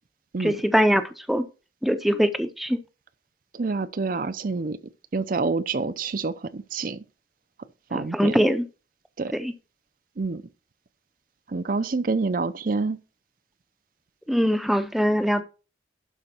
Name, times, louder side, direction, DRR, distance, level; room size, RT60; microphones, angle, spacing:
voice 1, 0.4-1.0 1.3-1.4 1.8-2.8 7.9-8.6 9.4-9.5 14.3-15.4, equal, ahead, 0.6 m, -22 dB
voice 2, 3.5-4.8 5.1-7.0 7.9-8.4 9.2-9.4 10.2-10.4 11.5-13.0, right 3 dB, 50° right, 0.5 m, -27 dB
11.5 x 5.0 x 4.4 m
head